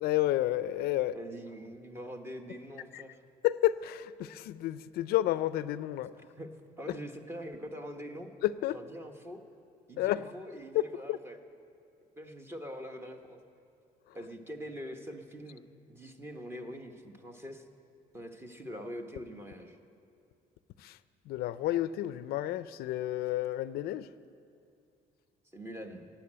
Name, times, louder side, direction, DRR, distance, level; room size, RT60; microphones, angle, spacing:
voice 1, 0.0-1.2 2.9-3.0 3.4-6.1 8.4-8.8 10.0-10.2 10.7-10.8 11.1-11.2 20.8-21.0 21.3-24.1, left 14 dB, 80° left, 0.4 m, -30 dB
voice 2, 1.1-3.2 6.2-6.5 6.8-8.3 8.7-9.4 9.9-11.4 12.2-13.4 14.1-17.6 18.1-19.8 25.5-26.1, equal, 15° right, 1.1 m, -44 dB
16.0 x 8.9 x 8.7 m
cardioid pair, 140°, 16 cm